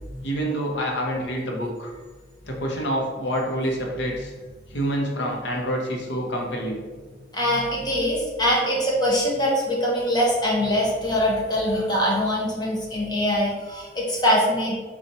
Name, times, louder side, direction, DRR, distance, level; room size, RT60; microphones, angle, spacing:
voice 1, 0.2-1.9 2.5-4.3 4.7-6.8, equal, 75° left, 0 dB, 0.8 m, -27 dB
voice 2, 7.3-14.8, equal, 20° left, -4 dB, 0.9 m, -23 dB
4.1 x 2.4 x 4.1 m, 1.4 s
head